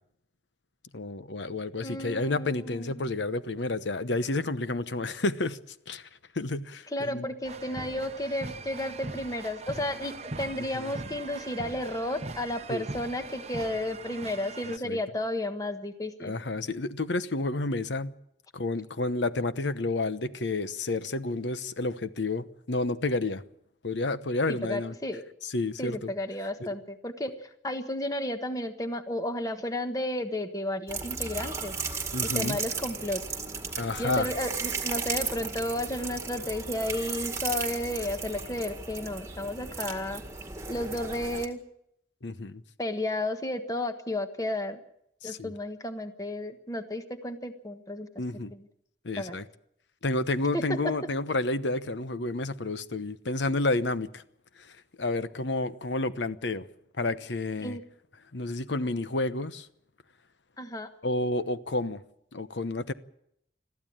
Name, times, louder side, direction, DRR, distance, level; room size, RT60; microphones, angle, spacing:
voice 1, 0.9-5.6 5.9-6.1 6.3-7.3 10.6-10.9 12.7-12.8 14.8-15.0 16.2-18.1 18.5-23.4 23.8-24.9 25.4-26.1 26.6-26.7 32.1-32.6 33.8-34.3 42.2-42.6 45.2-45.5 48.2-48.5 49.0-49.4 50.0-54.2 54.6-54.7 55.0-56.7 57.0-57.8 58.3-59.7 61.0-62.0 62.3-62.9, left 2 dB, 80° left, 1.0 m, -30 dB
voice 2, 1.8-2.9 6.9-16.3 24.6-25.2 25.8-31.7 32.2-33.2 34.0-40.2 40.7-41.6 42.8-44.8 45.2-48.1 48.5-48.6 49.2-49.4 50.5-50.6 57.6-57.8 60.6-60.9, left 1 dB, 20° left, 1.3 m, -33 dB
sound 1, 7.4-14.8, right 3 dB, 35° right, 0.8 m, -41 dB
sound 2, 30.9-41.5, right 5 dB, 15° right, 1.9 m, -35 dB
21.5 x 14.5 x 8.8 m
head